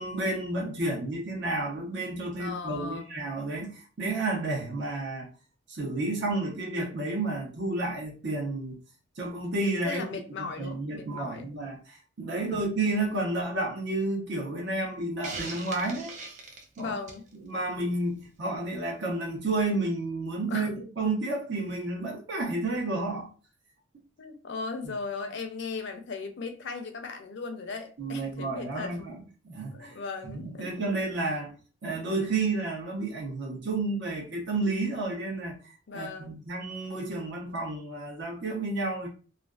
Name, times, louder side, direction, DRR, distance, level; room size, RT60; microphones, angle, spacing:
voice 1, 0.0-5.3 5.7-8.8 9.2-10.0 10.4-16.2 16.8-16.9 17.4-23.3 28.0-29.2 29.4-30.0 30.2-31.5 31.8-35.6 35.9-39.1, right 2 dB, 60° right, 0.8 m, -31 dB
voice 2, 2.4-3.1 9.8-11.5 16.8-17.3 20.5-20.7 24.2-29.1 29.7-30.7 35.9-36.4, left 4 dB, 60° left, 0.5 m, -37 dB
Hiss, 15.2-17.3, right 3 dB, 40° right, 0.4 m, -40 dB
2.4 x 2.3 x 2.3 m
head